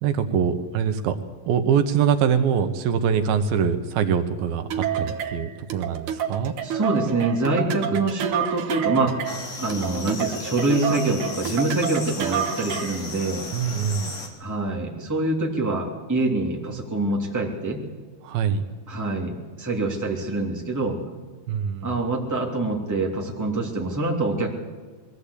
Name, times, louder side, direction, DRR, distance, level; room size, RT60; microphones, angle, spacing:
voice 1, 0.0-1.2 1.5-6.5 13.5-14.1 18.2-18.6 21.5-22.0, right 7 dB, 80° right, 8 dB, 2.9 m, -23 dB
sound 1, 4.7-13.1, right 9 dB, 65° right, 2.4 m, -29 dB
voice 2, 6.6-9.2 9.6-13.5 14.4-17.8 18.9-21.0 21.8-24.5, right 2 dB, 5° right, -1 dB, 2.4 m, -25 dB
sound 2, 9.3-14.3, left 3 dB, 50° left, 3.5 m, -36 dB
22.0 x 15.5 x 8.4 m, 1.4 s
omnidirectional pair, 4.2 m